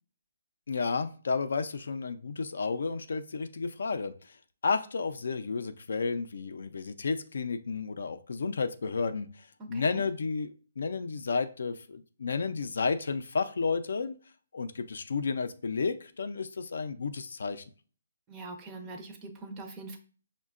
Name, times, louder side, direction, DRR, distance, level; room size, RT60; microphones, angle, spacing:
voice 1, 0.7-4.4 4.6-14.2 14.5-17.6, left 4 dB, 70° left, 9 dB, 0.4 m, -32 dB
voice 2, 9.6-10.0 18.3-20.0, right 2 dB, 15° right, 5 dB, 0.5 m, -43 dB
5.3 x 2.2 x 2.4 m, 0.40 s
hypercardioid pair, 165°, 0 cm